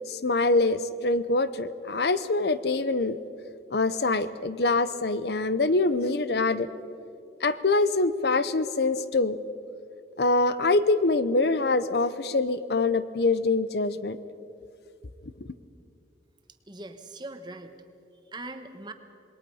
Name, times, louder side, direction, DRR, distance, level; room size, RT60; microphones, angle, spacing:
voice 1, 0.1-3.2 3.7-6.7 7.4-9.4 10.2-14.2, left 3 dB, 65° left, 14 dB, 0.7 m, -24 dB
voice 2, 16.7-17.8 18.3-18.9, right 2 dB, 25° right, 7 dB, 1.3 m, -40 dB
27.0 x 21.0 x 5.6 m, 2.5 s
head